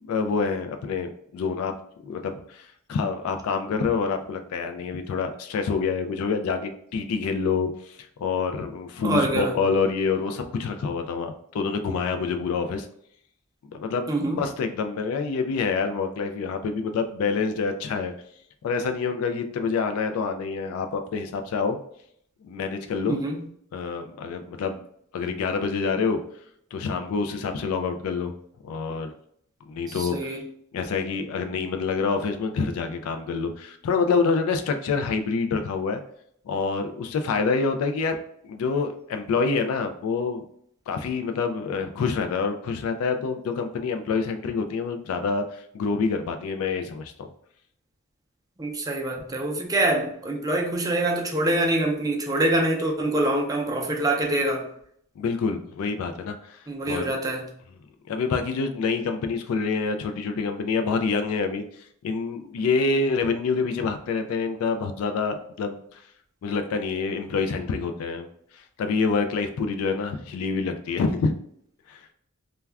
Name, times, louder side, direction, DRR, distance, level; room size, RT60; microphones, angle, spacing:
voice 1, 0.0-1.7 2.0-12.9 13.7-18.1 18.6-21.8 22.4-23.2 23.7-24.8 25.1-26.2 26.7-28.3 28.6-29.1 29.7-30.4 30.7-36.0 36.5-38.2 38.4-40.4 40.9-47.3 55.2-56.6 56.9-57.1 58.1-61.6 62.0-66.0 66.4-68.3 68.5-71.3 71.9-72.0, left 4 dB, 70° left, 7 dB, 0.3 m, -27 dB
voice 2, 9.0-9.6 14.1-14.4 23.1-23.4 29.9-30.4 48.6-54.7 56.7-57.5, right 1 dB, 15° right, 1 dB, 0.4 m, -25 dB
2.3 x 2.2 x 3.3 m, 0.68 s
head